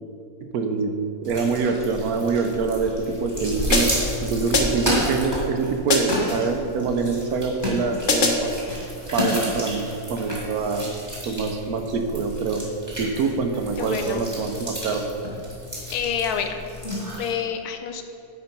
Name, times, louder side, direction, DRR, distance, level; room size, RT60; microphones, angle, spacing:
voice 1, 0.5-0.9 1.2-2.9 3.2-3.9 4.2-8.5 9.1-10.9 11.3-12.6 13.0-15.1, right 4 dB, 75° right, 6 dB, 1.2 m, -25 dB
sound 1, 1.2-17.3, left 1 dB, 10° right, 1.9 m, -31 dB
sound 2, 3.7-4.1 4.5-5.0 5.9-6.3 8.1-8.6, left 3 dB, 45° left, 0.8 m, -23 dB
voice 2, 13.8-14.3 15.9-16.6 17.2-18.0, left 7 dB, 80° left, 6 dB, 1.2 m, -27 dB
9.5 x 4.5 x 5.4 m, 2.7 s
omnidirectional pair, 1.6 m